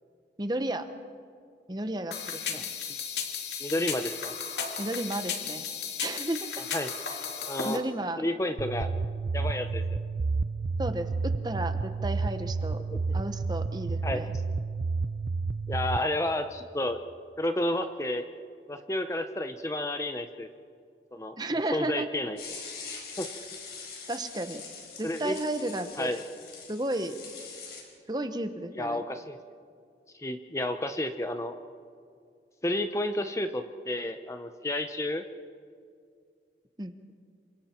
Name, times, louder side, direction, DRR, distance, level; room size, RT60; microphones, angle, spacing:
voice 1, 0.4-0.9 1.7-2.7 4.8-5.6 6.0-6.5 7.1-7.2 7.6-8.2 10.8-12.8 13.1-14.3 21.4-22.1 24.1-24.6 25.0-26.1 26.7-27.2 28.1-29.0 36.8-36.9, right 1 dB, 25° right, 9 dB, 1.0 m, -33 dB
sound 1, 2.1-7.8, left 6 dB, 80° left, 2.5 m, -35 dB
voice 2, 3.6-4.3 6.7-6.9 7.5-7.8 8.2-8.9 9.3-10.0 12.9-13.0 14.0-14.3 15.7-17.0 17.4-18.3 18.7-20.5 21.1-21.3 21.7-22.4 23.2-23.3 25.0-25.4 26.0-26.2 28.8-29.4 30.1-31.6 32.6-35.2, left 1 dB, 15° left, 8 dB, 0.7 m, -31 dB
sound 2, 8.6-16.0, right 4 dB, 65° right, 0.5 m, -30 dB
sound 3, 22.4-27.8, left 5 dB, 65° left, 4.5 m, -43 dB
27.5 x 25.0 x 4.5 m, 2.2 s
head